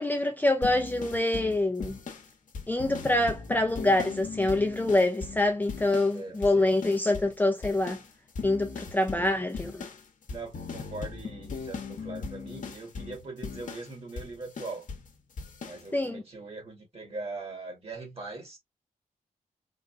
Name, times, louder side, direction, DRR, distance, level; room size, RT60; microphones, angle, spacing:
voice 1, 0.0-1.9 2.7-8.0 8.4-9.8 15.9-16.2, left 2 dB, 10° left, 0.5 m, -25 dB
sound 1, 0.6-6.2 6.4-7.4 7.6-15.1 15.4-15.8, left 5 dB, 65° left, 0.9 m, -39 dB
voice 2, 6.1-6.7 7.0-7.2 8.8-9.3 10.3-14.9 15.6-18.6, right 3 dB, 45° right, 2.0 m, -41 dB
3.8 x 2.2 x 2.4 m
cardioid pair, 80°, 14 cm